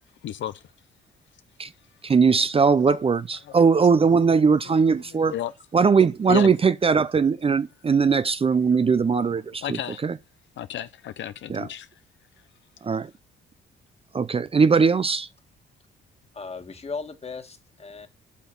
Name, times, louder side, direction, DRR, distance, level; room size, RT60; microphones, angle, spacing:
voice 1, 0.2-0.6 2.8-3.0 3.5-3.6 4.4-5.5 6.3-6.5 9.6-10.0 10.6-11.9, left 11 dB, 70° left, 0.6 m, -33 dB
voice 2, 2.0-5.3 5.7-10.1 11.5-11.7 12.8-13.1 14.1-15.3, right 5 dB, 30° right, 0.6 m, -20 dB
voice 3, 16.3-18.1, left 4 dB, 30° left, 1.8 m, -36 dB
8.5 x 6.0 x 7.1 m
cardioid pair, 90°, 20 cm